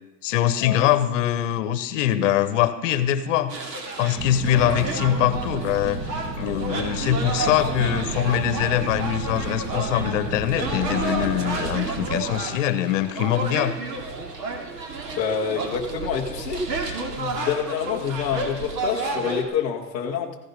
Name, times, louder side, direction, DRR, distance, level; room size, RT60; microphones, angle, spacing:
voice 1, 0.2-3.7 4.0-6.0 6.3-13.8, left 11 dB, 50° left, 12 dB, 1.1 m, -23 dB
sound 1, 3.5-19.4, right 3 dB, 80° right, 2.8 m, -31 dB
sound 2, 4.1-12.2, right 3 dB, 40° right, 2.2 m, -32 dB
voice 2, 15.1-16.6 17.1-20.4, left 7 dB, 15° left, -3 dB, 0.4 m, -27 dB
15.0 x 11.5 x 5.3 m, 1.0 s
hypercardioid pair, 145°, 49 cm